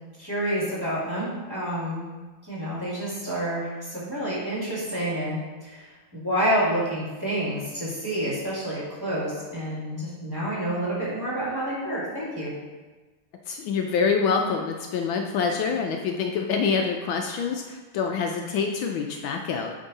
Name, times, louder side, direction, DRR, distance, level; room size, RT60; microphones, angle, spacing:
voice 1, 0.2-2.0 2.4-12.5, right 1 dB, 10° right, -8 dB, 1.8 m, -29 dB
voice 2, 13.5-19.7, left 5 dB, 75° left, 3 dB, 1.3 m, -26 dB
8.9 x 3.7 x 4.0 m, 1.3 s
omnidirectional pair, 2.3 m